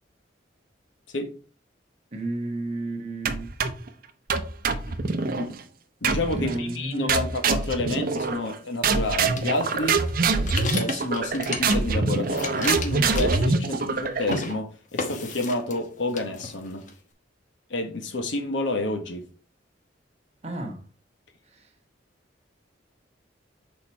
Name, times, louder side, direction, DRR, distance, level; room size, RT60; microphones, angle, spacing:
voice 1, 2.1-3.5 6.3-7.2 20.4-20.8 21.5-21.6, right 2 dB, 35° right, 1.5 m, -32 dB
sound 1, 3.3-3.9 4.3-5.5 6.0-6.6 7.1-8.5 8.8-14.5, right 4 dB, 50° right, 0.7 m, -25 dB
voice 2, 5.0-5.6 6.0-10.1 10.7-16.8 17.7-19.3, left 2 dB, 80° left, 1.3 m, -29 dB
sound 2, 9.3-12.0 12.2-13.9 14.2-14.5 15.0-15.9 16.1-16.9, left 3 dB, 45° left, 1.0 m, -33 dB
6.4 x 4.2 x 4.6 m
head